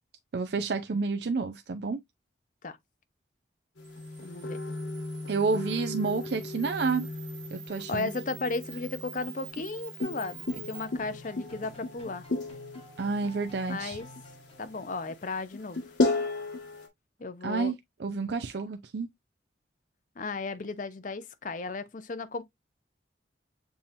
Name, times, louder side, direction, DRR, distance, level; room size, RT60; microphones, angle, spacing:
voice 1, 0.3-2.0 5.3-7.1 7.5-8.1 13.0-14.0 17.4-19.1, right 4 dB, 65° right, 0.5 m, -30 dB
sound 1, 3.8-16.9, left 2 dB, 90° left, 1.4 m, -35 dB
Camera, 3.8-10.8, right 8 dB, 40° right, 1.1 m, -48 dB
voice 2, 4.2-4.6 7.9-12.3 13.7-14.1 14.6-15.8 17.2-17.7 20.2-22.4, left 3 dB, 45° left, 0.6 m, -35 dB
sound 2, 10.0-15.2, left 1 dB, 30° left, 1.5 m, -51 dB
6.9 x 2.9 x 2.6 m
head